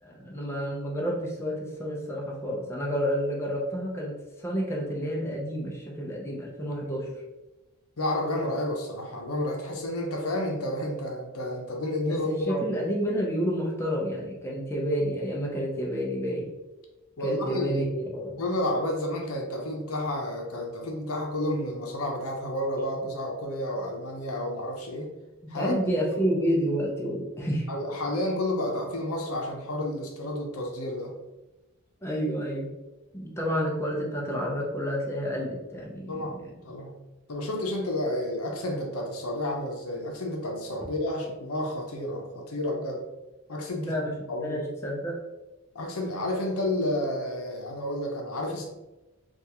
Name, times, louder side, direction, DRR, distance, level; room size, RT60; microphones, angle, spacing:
voice 1, 0.0-4.2 4.4-7.1 12.1-16.5 17.2-17.8 18.1-18.4 25.5-27.7 32.0-32.7 33.1-36.5 43.8-44.1 44.4-45.2, equal, 10° left, -3 dB, 0.6 m, -29 dB
voice 2, 8.0-12.6 17.2-17.8 18.4-25.1 25.5-25.8 27.7-31.1 36.1-36.9 37.3-43.1 43.5-44.6 45.7-48.6, left 1 dB, 80° left, 1 dB, 0.7 m, -31 dB
3.4 x 2.4 x 2.9 m, 1.1 s
head